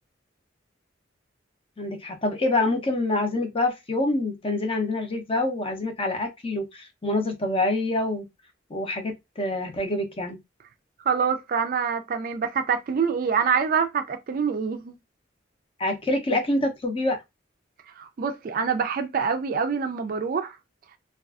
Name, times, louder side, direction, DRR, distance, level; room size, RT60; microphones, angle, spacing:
voice 1, 1.8-8.2 8.7-10.4 15.8-17.2, left 2 dB, 30° left, 0.6 m, -26 dB
voice 2, 11.1-14.9 18.0-20.6, right 6 dB, 45° right, 0.3 m, -25 dB
2.5 x 2.3 x 2.3 m
head